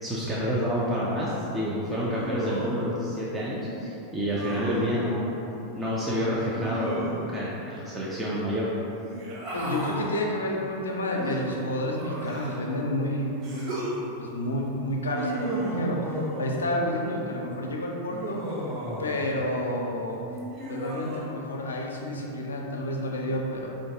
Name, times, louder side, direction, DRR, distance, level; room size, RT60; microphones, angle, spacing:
voice 1, 0.0-5.3 5.7-8.7, equal, 10° right, -8 dB, 0.5 m, -28 dB
Human voice, 2.1-2.9 4.3-5.0 6.6-7.4 9.0-10.1 11.2-12.7 13.4-14.0 15.1-16.7 18.1-19.3 20.3-21.2, right 1 dB, 25° right, 1.2 m, -33 dB
voice 2, 9.5-13.8 14.2-18.4 19.0-20.2 20.7-23.7, left 1 dB, 70° left, 0 dB, 0.5 m, -30 dB
4.6 x 2.6 x 3.6 m, 3.0 s
figure-of-eight pair, 90°, 0 cm